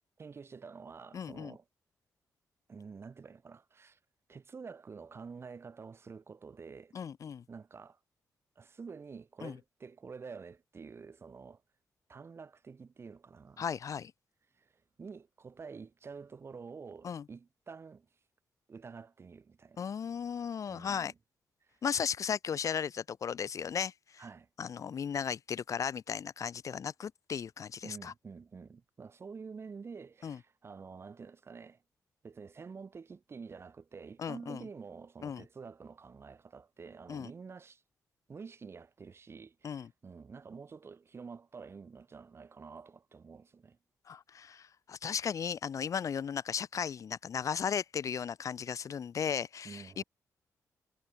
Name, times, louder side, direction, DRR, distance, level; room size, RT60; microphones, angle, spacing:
voice 1, 0.2-1.6 2.7-4.0 4.3-6.9 7.5-8.0 8.6-11.6 12.1-13.7 14.6-14.7 15.0-18.1 18.7-19.8 20.7-21.1 21.6-21.7 24.2-24.5 27.8-31.8 32.2-37.8 38.3-43.8 49.6-50.0, right 5 dB, 40° right, 6.4 m, -48 dB
voice 2, 1.1-1.5 6.9-7.4 9.4-9.6 13.6-14.1 17.0-17.2 19.8-21.1 21.8-24.2 24.6-28.1 30.2-30.4 34.2-34.6 35.2-35.4 37.1-37.3 39.6-39.9 44.1-50.0, left 7 dB, 60° left, 1.7 m, -36 dB
cardioid pair, 110°, 6 cm